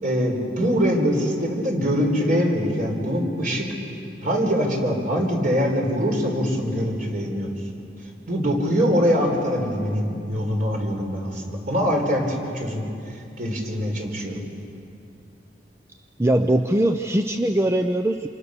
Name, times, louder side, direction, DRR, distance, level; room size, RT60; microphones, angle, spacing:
voice 1, 0.0-3.7 4.2-7.5 8.3-12.8 13.4-14.4, equal, 50° right, 1 dB, 4.7 m, -23 dB
voice 2, 16.2-18.3, right 1 dB, 15° right, 6 dB, 0.6 m, -21 dB
28.5 x 28.0 x 6.7 m, 2.7 s
head